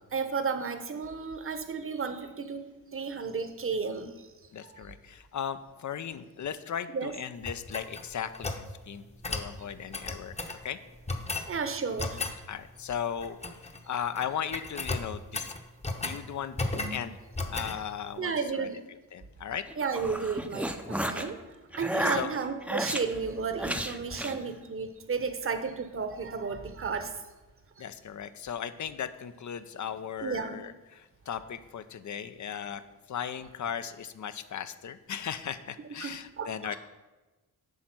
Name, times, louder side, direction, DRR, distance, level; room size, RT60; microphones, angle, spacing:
voice 1, 0.1-2.7 2.9-4.3 4.6-4.8 6.9-7.1 11.5-12.2 18.2-18.8 19.8-21.4 21.7-27.2 27.8-27.9 30.2-30.6 36.0-36.8, right 5 dB, 35° right, 8 dB, 1.0 m, -33 dB
voice 2, 4.5-10.4 10.6-10.8 12.5-15.5 16.0-17.2 17.5-18.7 19.1-19.7 21.9-22.3 27.8-32.8 33.1-36.8, left 8 dB, 55° left, 12 dB, 0.6 m, -37 dB
sound 1, 7.4-8.7 9.2-9.5 9.9-10.6 11.1-11.5 12.0-12.4 13.2-13.8 14.1-14.3 14.5-16.2 16.6-17.0 17.3-17.8, left 2 dB, 20° left, 0.9 m, -34 dB
sound 2, 19.7-21.3 21.7-23.0 23.6-24.4, right 1 dB, 5° right, 0.6 m, -32 dB
8.6 x 5.2 x 6.0 m, 1.2 s
cardioid pair, 70°, 36 cm